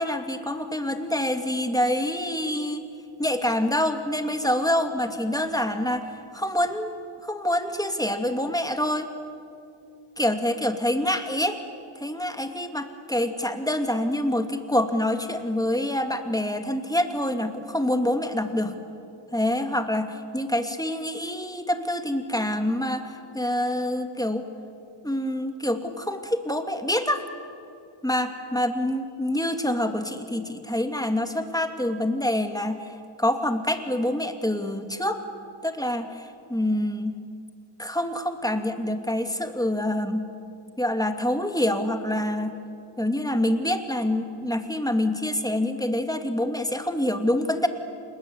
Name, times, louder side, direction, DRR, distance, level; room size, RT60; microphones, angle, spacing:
voice 1, 0.0-2.8 3.2-7.0 7.3-9.1 10.2-11.6 12.0-18.7 19.3-24.5 25.0-27.2 28.0-35.2 35.6-37.2 37.8-40.3 40.8-42.6 43.0-47.7, left 1 dB, 5° left, 6 dB, 2.4 m, -26 dB
28.5 x 20.5 x 9.6 m, 2.5 s
wide cardioid pair, 55°, 50 cm